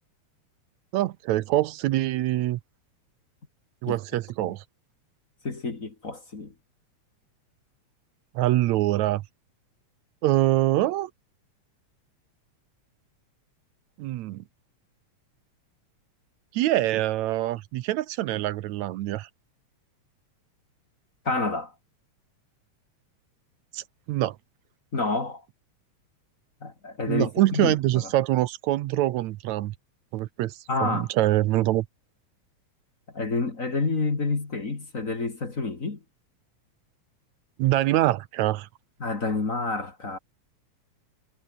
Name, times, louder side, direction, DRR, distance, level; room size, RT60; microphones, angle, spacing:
voice 1, 0.9-2.6 3.8-4.6 8.4-9.2 10.2-11.1 14.0-14.4 16.5-19.3 23.7-24.4 27.1-29.7 30.1-31.9 37.6-38.7, right 15 dB, 75° right, 2.1 m, -24 dB
voice 2, 5.4-6.5 21.2-21.7 24.9-25.4 26.6-27.8 30.7-31.1 33.1-36.0 39.0-40.2, left 3 dB, 30° left, 2.5 m, -28 dB
omnidirectional pair, 3.3 m